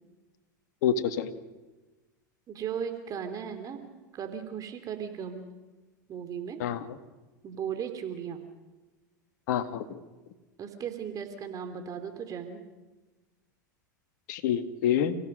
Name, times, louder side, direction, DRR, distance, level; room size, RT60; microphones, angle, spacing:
voice 1, 0.8-1.3 6.6-7.0 9.5-10.0 14.3-15.1, left 9 dB, 65° left, 8 dB, 1.9 m, -27 dB
voice 2, 2.5-3.8 4.1-5.5 6.1-6.6 7.4-8.4 10.6-12.6, right 8 dB, 35° right, 7 dB, 3.0 m, -36 dB
30.0 x 16.5 x 6.5 m, 1.2 s
hypercardioid pair, 90°, 10 cm